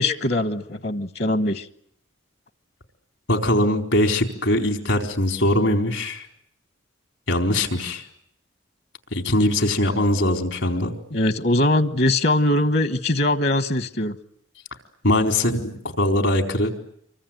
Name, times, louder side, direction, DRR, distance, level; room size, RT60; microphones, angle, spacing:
voice 1, 0.0-1.7 11.1-14.1, left 1 dB, 55° left, 12 dB, 1.2 m, -21 dB
voice 2, 3.3-6.3 7.3-8.0 9.1-10.9 15.0-16.7, left 1 dB, 80° left, 5 dB, 4.4 m, -21 dB
26.5 x 24.0 x 9.2 m, 0.69 s
head